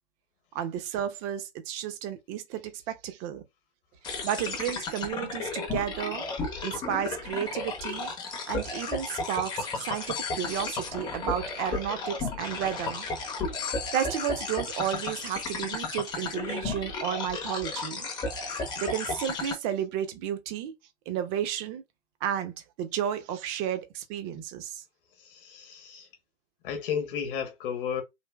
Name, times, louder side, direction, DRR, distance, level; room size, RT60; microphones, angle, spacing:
voice 1, 0.5-3.4 4.2-6.2 6.6-8.1 8.5-13.1 13.5-18.1 18.5-20.7 21.1-21.8 22.2-24.8, right 10 dB, 25° right, 0.6 m, -32 dB
sound 1, 4.0-19.5, left 3 dB, 10° left, 0.7 m, -34 dB
sound 2, 10.1-11.8 13.6-15.0 15.6-15.8 16.7-16.8, left 12 dB, 80° left, 0.6 m, -42 dB
voice 2, 25.2-26.1 26.6-28.0, left 7 dB, 45° left, 1.1 m, -33 dB
3.3 x 2.6 x 2.2 m
hypercardioid pair, 125°, 37 cm